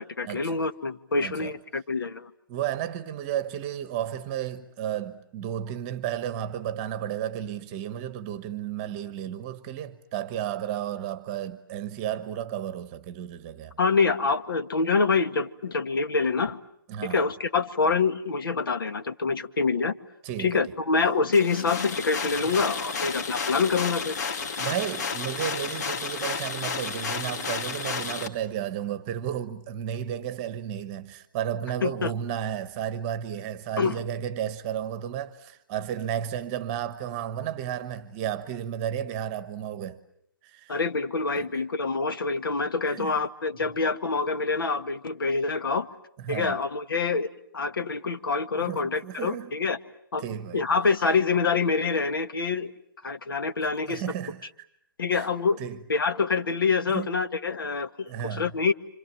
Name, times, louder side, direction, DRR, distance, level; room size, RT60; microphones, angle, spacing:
voice 1, 0.0-2.3 13.8-16.6 17.1-20.0 20.4-24.2 31.8-32.1 33.8-34.0 40.7-45.9 46.3-47.3 47.5-49.8 50.1-50.2 50.5-52.7 53.0-54.0 55.0-55.6 55.9-58.7, left 4 dB, 80° left, 2.0 m, -26 dB
voice 2, 1.2-1.5 2.5-13.8 16.9-17.2 20.2-20.6 22.4-22.5 24.6-40.0 40.4-40.8 41.4-41.5 42.9-43.1 46.2-46.6 48.6-49.5 50.2-50.6 53.9-54.7 55.1-55.3 55.6-55.8 56.9-57.1 58.1-58.5, right 10 dB, 15° right, 1.2 m, -33 dB
sound 1, 21.3-28.3, left 5 dB, 50° left, 2.7 m, -32 dB
29.5 x 26.5 x 7.6 m
hypercardioid pair, 170°, 12 cm